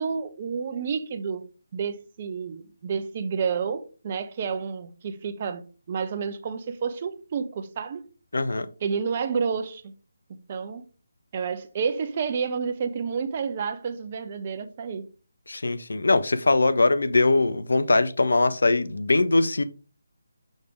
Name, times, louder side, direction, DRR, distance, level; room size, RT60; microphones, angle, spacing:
voice 1, 0.0-1.4 1.7-8.0 8.8-9.9 10.5-10.8 11.3-15.1, right 6 dB, 35° right, 0.7 m, -30 dB
voice 2, 8.3-8.7 15.5-19.6, left 2 dB, 70° left, 0.7 m, -21 dB
6.5 x 5.0 x 3.5 m
figure-of-eight pair, 150°, 0 cm